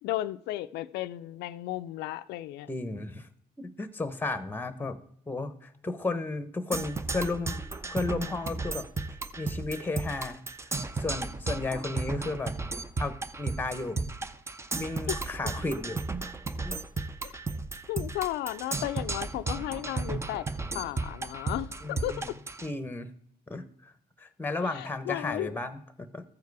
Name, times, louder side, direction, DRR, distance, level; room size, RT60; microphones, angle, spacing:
voice 1, 0.0-2.7 15.1-15.2 17.2-17.3 17.9-20.5 20.7-22.2 24.6-25.6, left 15 dB, 85° left, 0.4 m, -34 dB
voice 2, 2.7-3.3 3.6-5.0 5.3-7.6 7.9-8.9 9.4-10.4 11.0-12.5 13.0-14.0 14.7-16.0 16.6-16.8 21.8-22.3 22.6-23.1 23.5-23.9 24.2-26.2, left 3 dB, 10° left, 0.9 m, -33 dB
Percussion, 6.7-22.7, right 3 dB, 15° right, 0.5 m, -34 dB
14.0 x 4.7 x 4.7 m
cardioid pair, 110°, 17 cm